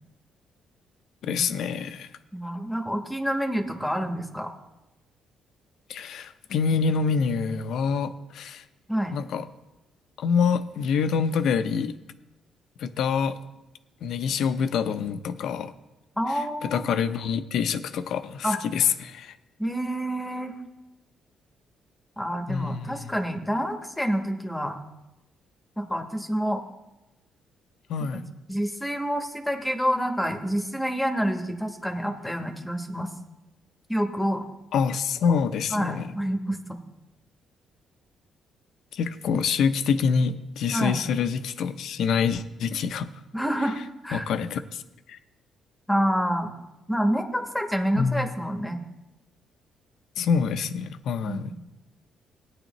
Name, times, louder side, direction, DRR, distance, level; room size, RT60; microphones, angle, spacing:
voice 1, 1.2-2.1 5.9-8.6 9.1-9.5 10.2-11.9 12.8-13.4 14.0-15.7 16.6-19.3 22.5-23.1 27.9-28.3 34.7-36.1 38.9-43.1 44.1-44.8 45.1-45.2 48.0-48.3 50.2-51.5, left 6 dB, 75° left, 11 dB, 0.6 m, -26 dB
voice 2, 2.3-4.5 8.9-9.2 16.2-16.9 18.4-18.6 19.6-20.5 22.2-24.8 25.8-26.6 28.5-33.1 33.9-34.4 35.7-36.6 40.7-41.0 43.3-43.8 44.0-44.2 45.9-46.5 46.9-48.8 51.2-51.5, equal, 5° left, 4 dB, 1.1 m, -27 dB
16.5 x 9.5 x 3.0 m, 1.0 s
cardioid pair, 90°, 0 cm